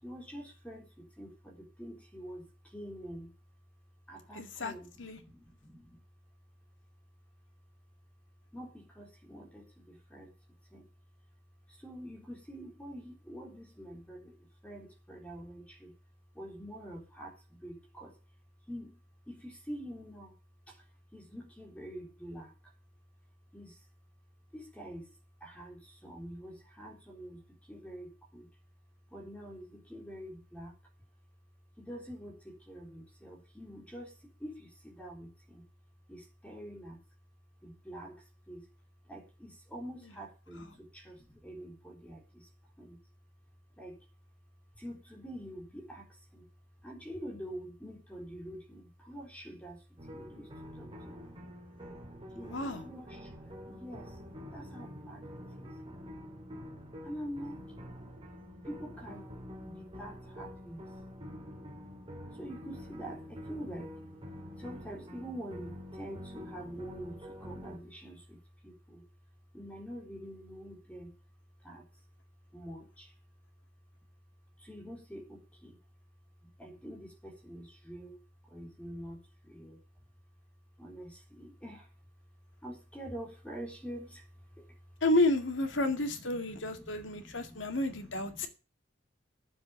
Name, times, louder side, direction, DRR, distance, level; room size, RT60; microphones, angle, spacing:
voice 1, 0.0-3.3 4.1-6.0 8.5-10.3 10.7-10.9 11.7-15.9 16.3-18.2 18.7-19.0 19.3-20.3 20.7-20.8 21.1-22.7 23.5-23.8 24.5-25.1 25.4-28.5 29.1-30.7 31.8-35.7 36.1-37.0 37.6-38.7 39.0-42.5 42.8-43.0 43.8-44.0 44.7-46.5 46.8-49.8 50.1-51.1 52.3-54.2 54.5-55.7 57.0-57.7 58.6-60.9 62.3-64.0 64.6-69.0 69.5-71.1 71.6-71.9 72.5-73.1 74.6-75.8 76.4-78.2 78.4-79.8 80.8-81.9 82.6-84.3 84.6-84.8 85.6-88.5, equal, 5° left, 1 dB, 3.8 m, -46 dB
voice 2, 4.3-4.7 5.0-5.2 52.4-52.8 85.0-88.5, left 2 dB, 85° left, 7 dB, 2.2 m, -31 dB
sound 1, 50.0-67.8, equal, 30° right, 3.4 m, -47 dB
9.8 x 7.5 x 8.7 m, 0.33 s
head